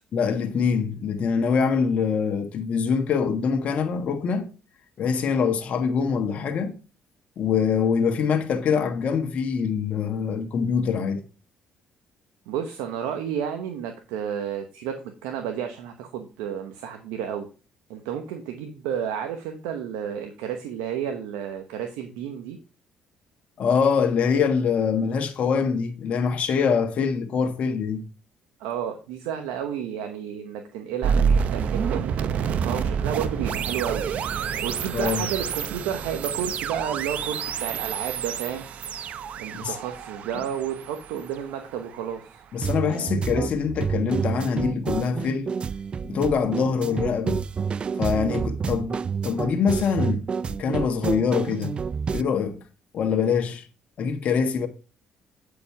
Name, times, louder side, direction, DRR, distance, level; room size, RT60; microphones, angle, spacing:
voice 1, 0.1-4.5 5.0-6.7 7.4-11.2 23.6-28.0 34.9-35.2 39.6-39.7 42.5-45.5 46.0-47.4 48.0-49.0 49.2-51.8 52.1-52.6 52.9-53.6 54.0-54.7, left 6 dB, 60° left, 1.3 m, -24 dB
voice 2, 12.5-17.5 17.9-22.6 28.6-34.0 34.6-38.7 39.4-42.4, right 8 dB, 90° right, 1.0 m, -31 dB
sound 1, 31.0-42.1, right 7 dB, 65° right, 0.8 m, -28 dB
sound 2, 42.6-52.2, right 6 dB, 40° right, 0.4 m, -29 dB
8.5 x 5.1 x 4.7 m
supercardioid pair, 65°, 3 cm